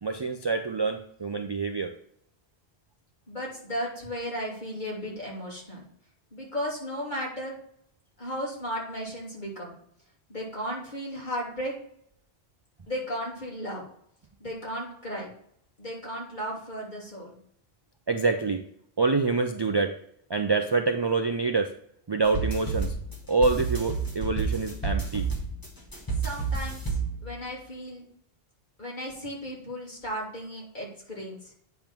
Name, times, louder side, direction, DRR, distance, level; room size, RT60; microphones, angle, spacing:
voice 1, 0.0-1.9 18.1-18.6 19.0-20.0 20.3-21.7 22.1-23.0 23.3-25.3, right 4 dB, 35° right, 6 dB, 0.4 m, -26 dB
voice 2, 3.3-5.9 6.3-7.6 8.2-9.8 10.3-11.7 12.9-13.8 14.4-15.3 15.8-17.4 26.2-28.0 28.8-31.5, equal, 45° left, -5 dB, 3.1 m, -35 dB
sound 1, 22.2-27.5, right 4 dB, 20° left, 1.6 m, -30 dB
9.1 x 3.6 x 5.9 m, 0.68 s
omnidirectional pair, 1.1 m